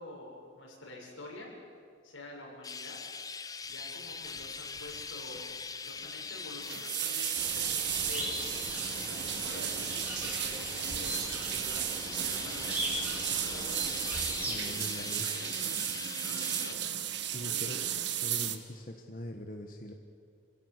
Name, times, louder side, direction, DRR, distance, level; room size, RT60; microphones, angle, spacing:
voice 1, 0.0-1.5 2.0-3.0 3.7-5.4 5.8-8.3 8.9-14.0 14.5-15.5 16.2-16.8 17.5-17.7, left 2 dB, 90° left, -2 dB, 7.0 m, -48 dB
Chirp tweet, 2.6-16.7, left 5 dB, 20° left, 0.6 m, -42 dB
sound 1, 4.3-4.5 4.8-5.1 5.4-5.5 6.4-18.6, right 11 dB, 60° right, 1.4 m, -35 dB
sound 2, 7.4-14.6, right 1 dB, 10° right, 3.6 m, -40 dB
voice 2, 14.5-15.3 17.3-17.8 18.2-19.9, left 1 dB, 45° left, 3 dB, 1.4 m, -42 dB
28.5 x 16.5 x 8.1 m, 2.2 s
head